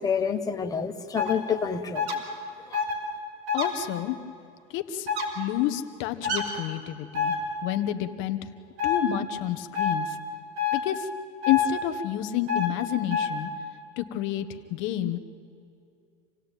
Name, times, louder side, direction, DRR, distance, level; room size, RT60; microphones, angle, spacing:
voice 1, 0.0-2.1 2.7-2.8, left 6 dB, 10° left, 4 dB, 1.1 m, -28 dB
sound 1, 1.2-1.3 1.9-2.2 2.7-2.9 3.5-3.7 5.1-5.3 6.2-6.4 7.1-7.4 8.8-9.0 9.7-9.9 10.6-10.8 11.4-11.7 12.5-12.7 13.1-13.3, left 6 dB, 65° right, 5.7 m, -26 dB
voice 2, 3.5-4.2 4.7-5.1 5.3-7.3 7.6-8.4 8.8-10.2 10.7-11.1 11.5-13.5 14.0-15.2, left 12 dB, 35° left, 8 dB, 1.4 m, -29 dB
27.5 x 17.0 x 9.2 m, 2.6 s
supercardioid pair, 155°, 35 cm